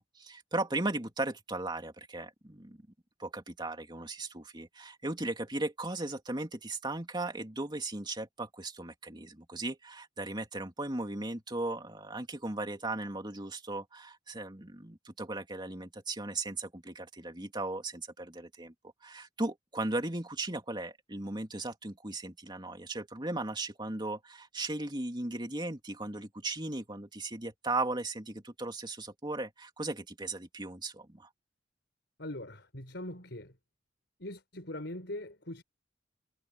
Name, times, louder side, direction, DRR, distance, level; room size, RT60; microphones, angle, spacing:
voice 1, 0.0-2.8 3.2-18.7 19.0-31.3, right 2 dB, 25° right, 2.9 m, -37 dB
voice 2, 32.2-33.6 34.2-35.6, left 1 dB, 65° left, 6.8 m, -41 dB
head